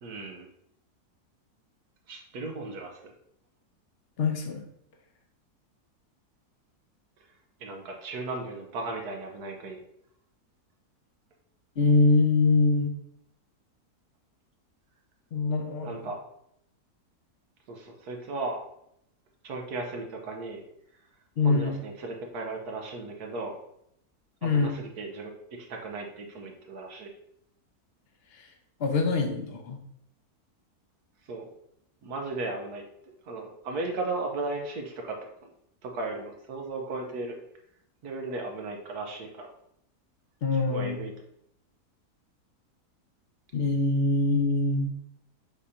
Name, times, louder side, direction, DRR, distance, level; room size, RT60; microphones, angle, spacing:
voice 1, 0.0-0.5 2.1-3.1 7.6-9.8 15.8-16.2 17.7-18.6 19.4-20.6 21.4-23.6 24.4-27.1 31.3-31.5 32.0-32.8 33.2-35.2 35.4-35.5 35.8-37.4 38.0-39.5 40.7-41.1, right 3 dB, 80° right, 2 dB, 1.5 m, -36 dB
voice 2, 4.2-4.6 11.8-12.9 15.3-16.1 21.4-21.7 24.4-24.7 28.4-28.5 28.8-29.8 40.4-41.0 43.5-44.9, left 3 dB, 45° left, 4 dB, 1.0 m, -24 dB
7.0 x 2.8 x 4.9 m, 0.74 s
omnidirectional pair, 1.6 m